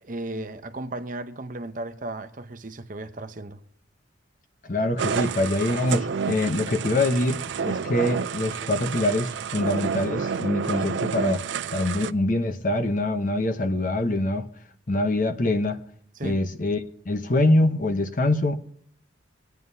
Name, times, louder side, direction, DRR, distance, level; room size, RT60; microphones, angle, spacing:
voice 1, 0.0-3.6 16.2-16.4, right 2 dB, 40° right, 0.7 m, -35 dB
voice 2, 4.6-11.4 11.7-14.5 14.9-15.8 16.2-18.6, left 1 dB, 40° left, 0.8 m, -24 dB
sound 1, 5.0-12.1, right 6 dB, 65° right, 0.4 m, -30 dB
24.5 x 9.2 x 2.7 m
head